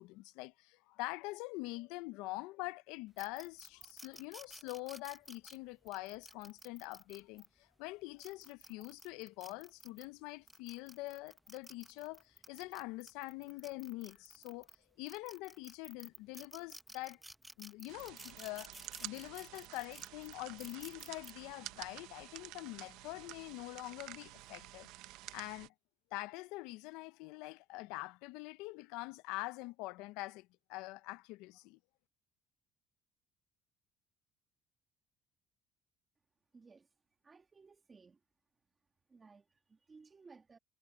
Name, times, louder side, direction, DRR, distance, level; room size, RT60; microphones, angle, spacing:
voice 1, 0.0-14.7 15.0-17.2 17.6-18.7 19.0-24.9 25.3-25.7 26.1-31.8, left 21 dB, 90° left, 0.5 m, -45 dB
sound 1, 3.2-7.5 8.0-10.1 10.5-14.7 15.1-21.3, right 1 dB, 5° right, 0.7 m, -54 dB
sound 2, 17.9-25.7, right 17 dB, 85° right, 0.8 m, -50 dB
voice 2, 36.5-36.9 37.2-38.2 39.1-40.6, right 4 dB, 25° right, 1.7 m, -59 dB
cardioid pair, 125°, 0 cm